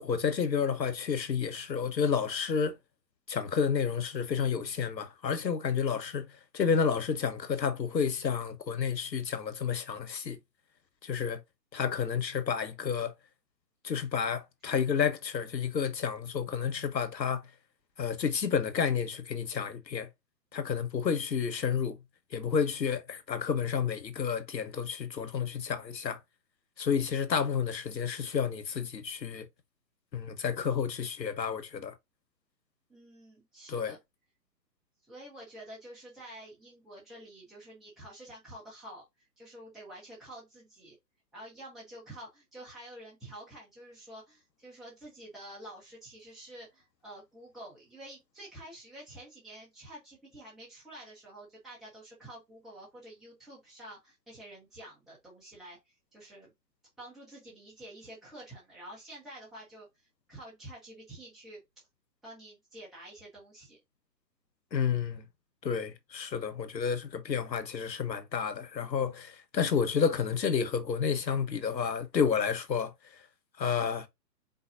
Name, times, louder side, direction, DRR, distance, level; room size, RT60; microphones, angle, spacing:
voice 1, 0.0-2.8 3.3-10.4 11.0-11.4 11.7-13.1 13.8-17.4 18.0-20.1 20.5-22.0 22.3-26.2 26.8-29.4 30.1-31.9 33.7-33.9 64.7-65.3 65.6-73.2 73.6-74.1, left 6 dB, 80° left, 1.3 m, -30 dB
voice 2, 32.9-34.0 35.0-39.1 39.4-41.0 41.3-56.5 57.0-61.6 62.2-63.8, right 1 dB, ahead, 0.9 m, -49 dB
4.7 x 4.0 x 2.6 m
hypercardioid pair, 140°, 50 cm